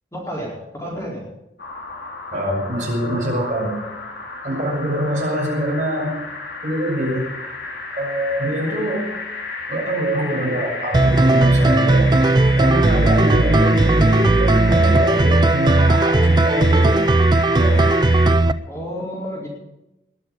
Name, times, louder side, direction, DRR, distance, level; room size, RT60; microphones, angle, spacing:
voice 1, 0.1-1.2 18.6-19.5, equal, 15° left, -4 dB, 4.5 m, -30 dB
sound 1, 1.6-18.4, left 3 dB, 75° left, 3.6 m, -32 dB
voice 2, 2.3-3.8 4.4-7.3 7.9-9.1 9.7-12.1 12.6-17.0 17.5-17.8, right 1 dB, 45° right, -2 dB, 6.5 m, -24 dB
sound 2, 10.9-18.5, right 2 dB, 25° right, 0.5 m, -16 dB
21.0 x 7.5 x 8.6 m, 0.94 s
head